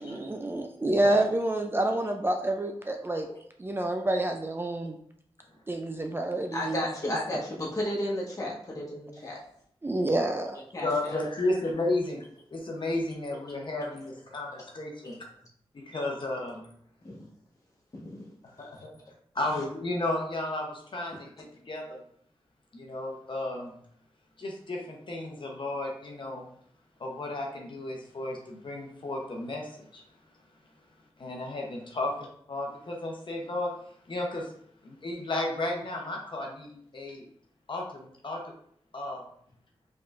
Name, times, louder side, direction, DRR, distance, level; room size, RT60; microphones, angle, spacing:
voice 1, 0.0-3.3 3.6-5.0 5.7-7.4 9.8-10.6, right 1 dB, 20° right, 4 dB, 0.4 m, -28 dB
voice 2, 6.5-9.4 10.7-11.2 15.0-15.1 17.0-17.2 17.9-18.3 18.7-18.8, left 1 dB, 35° left, -4 dB, 1.3 m, -33 dB
voice 3, 10.8-12.2 12.5-15.1 15.7-16.7 18.4-18.9 19.3-22.0 22.7-23.7 24.4-26.5 27.0-30.0 31.2-33.7 34.1-34.5 34.8-37.2 37.7-38.4 38.9-39.2, left 2 dB, 50° left, 0 dB, 0.8 m, -33 dB
4.8 x 3.6 x 2.5 m, 0.65 s
wide cardioid pair, 125°, 10 cm